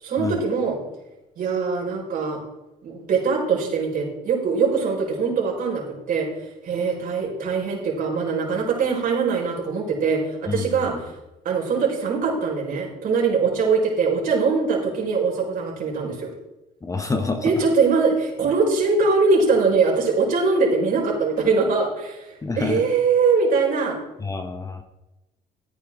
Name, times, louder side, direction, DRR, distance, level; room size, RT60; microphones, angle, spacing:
voice 1, 0.0-0.8 1.4-2.4 2.8-6.3 6.6-11.1 11.4-16.3 17.4-24.0, right 4 dB, 55° right, -1 dB, 4.9 m, -22 dB
voice 2, 10.5-11.0 16.8-17.7 22.4-22.8 24.2-24.8, left 3 dB, 20° left, 7 dB, 1.1 m, -28 dB
14.0 x 9.5 x 3.7 m, 0.95 s
cardioid pair, 110°, 17 cm